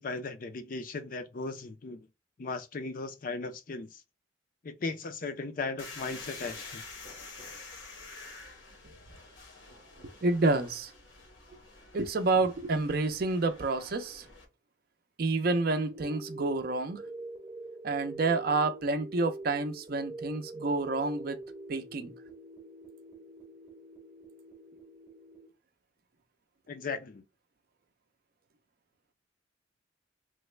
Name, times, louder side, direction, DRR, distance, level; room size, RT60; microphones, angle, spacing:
voice 1, 0.0-2.1 2.4-4.0 4.6-6.8 26.7-27.2, left 3 dB, 45° left, 0.4 m, -37 dB
sound 1, 5.8-14.5, left 3 dB, 75° left, 0.9 m, -48 dB
voice 2, 10.2-10.9 11.9-14.3 15.2-17.0 17.8-21.4 21.7-22.1, right 3 dB, 50° right, 0.5 m, -29 dB
sound 2, 15.5-25.5, right 2 dB, 20° right, 0.8 m, -45 dB
3.2 x 2.1 x 3.1 m
head